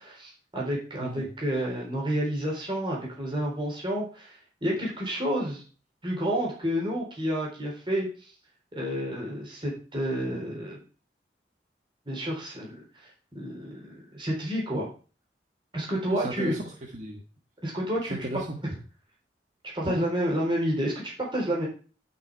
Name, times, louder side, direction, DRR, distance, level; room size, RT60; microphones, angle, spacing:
voice 1, 0.0-5.6 6.0-8.3 8.7-10.8 12.1-14.9 15.7-16.5 17.6-18.2 18.6-18.7 19.7-21.7, equal, 30° right, -2 dB, 4.1 m, -30 dB
voice 2, 1.0-1.3 16.1-17.2 18.1-18.6 19.8-20.0, right 1 dB, 45° right, 2 dB, 1.4 m, -35 dB
11.5 x 6.3 x 4.8 m, 0.38 s
head